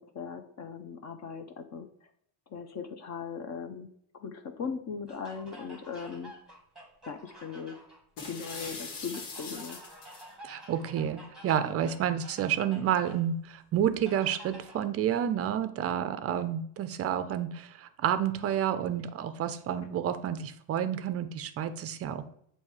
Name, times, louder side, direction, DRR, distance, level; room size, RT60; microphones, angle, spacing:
voice 1, 0.0-2.1 2.5-6.3 7.1-7.8 8.2-9.8, left 6 dB, 35° left, 7 dB, 0.6 m, -39 dB
sound 1, 5.1-8.0 9.1-13.3 14.0-14.8, right 1 dB, ahead, 1.2 m, -50 dB
sound 2, 8.2-10.3, left 4 dB, 90° left, 1.6 m, -41 dB
voice 2, 10.4-22.2, right 9 dB, 30° right, 11 dB, 0.4 m, -30 dB
7.2 x 2.7 x 4.7 m, 0.67 s
cardioid pair, 135°, 48 cm